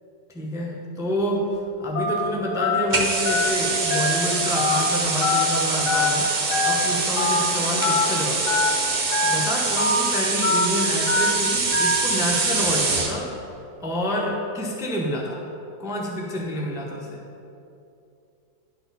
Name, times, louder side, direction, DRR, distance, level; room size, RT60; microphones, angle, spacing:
voice 1, 0.3-1.5 1.8-6.3 6.6-8.6 9.2-13.3 13.8-15.4 15.8-17.2, equal, 5° right, -2 dB, 0.3 m, -28 dB
Telephone, 2.0-2.2 2.6-2.8 3.3-3.5 3.9-4.1 4.6-4.8 5.2-5.4 5.9-6.1 6.5-6.7 7.2-7.4 7.8-8.0 8.5-8.7 9.1-9.4 9.8-10.0 10.4-10.7 11.1-11.3 11.7-12.0, left 4 dB, 70° left, 1.6 m, -23 dB
sound 1, 2.9-13.2, right 3 dB, 45° right, 0.8 m, -24 dB
11.5 x 4.2 x 4.1 m, 2.6 s
omnidirectional pair, 1.8 m